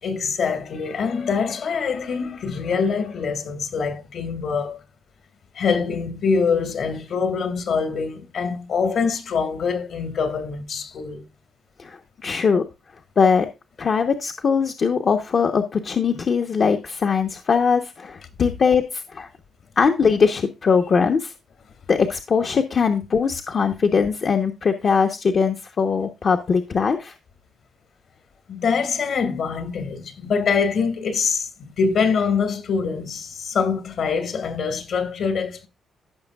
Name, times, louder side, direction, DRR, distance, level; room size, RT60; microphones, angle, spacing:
voice 1, 0.0-4.8 5.6-11.2 18.4-18.5 28.5-35.7, left 5 dB, 65° left, 1.9 m, -24 dB
voice 2, 11.8-12.6 13.2-13.5 13.8-19.3 19.8-21.3 21.9-27.1, left 5 dB, 50° left, 1.0 m, -21 dB
15.5 x 5.9 x 2.3 m
cardioid pair, 80°, 0 cm